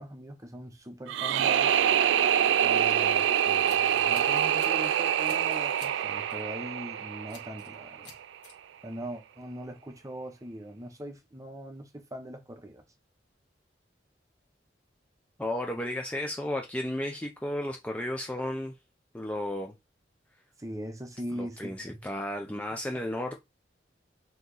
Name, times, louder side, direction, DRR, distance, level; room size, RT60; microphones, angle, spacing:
voice 1, 0.0-1.8 2.6-8.1 8.8-12.8 20.6-22.0 22.7-22.8, equal, 20° right, 0.8 m, -41 dB
sound 1, 1.1-8.1, right 9 dB, 75° right, 0.3 m, -25 dB
Scissors, 3.4-4.9 5.2-6.0 6.3-6.5 7.3-7.7 8.0-8.5, left 5 dB, 70° left, 1.6 m, -51 dB
voice 2, 15.4-18.7 19.1-19.7 21.3-23.4, left 1 dB, 10° left, 0.5 m, -33 dB
3.9 x 2.9 x 3.8 m
head